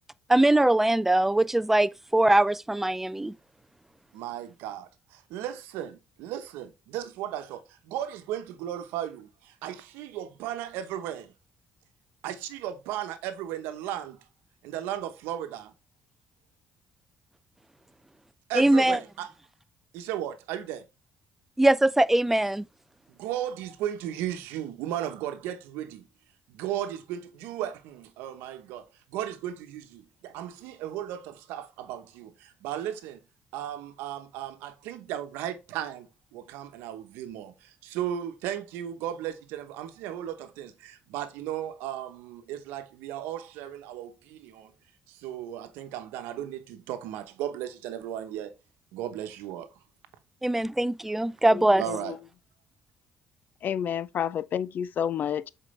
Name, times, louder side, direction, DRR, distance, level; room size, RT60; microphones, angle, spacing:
voice 1, 0.3-3.3 18.5-19.0 21.6-22.6 50.4-51.8, right 1 dB, 10° right, 0.4 m, -22 dB
voice 2, 4.1-11.3 12.2-14.2 14.6-15.7 18.5-19.3 19.9-20.8 23.2-26.0 26.5-28.8 29.1-33.2 33.5-44.7 45.1-48.5 48.9-49.7 51.8-52.2, right 11 dB, 90° right, 0.9 m, -35 dB
voice 3, 51.5-52.0 53.6-55.5, left 9 dB, 60° left, 0.5 m, -30 dB
7.6 x 4.6 x 3.2 m
supercardioid pair, 75°, 4 cm